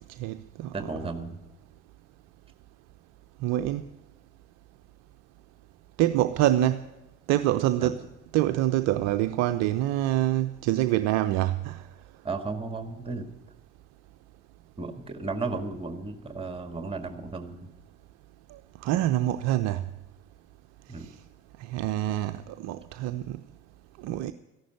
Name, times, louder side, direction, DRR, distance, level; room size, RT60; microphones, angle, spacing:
voice 1, 0.2-0.9 3.4-3.9 6.0-6.9 7.3-8.0 8.3-11.8 18.5-19.8 21.6-23.4 24.0-24.3, right 13 dB, 50° right, 0.6 m, -26 dB
voice 2, 0.7-1.4 7.8-7.9 12.2-13.3 14.8-17.7 20.9-21.1, right 3 dB, 15° right, 1.8 m, -34 dB
14.5 x 11.0 x 6.9 m
figure-of-eight pair, 60°, 35 cm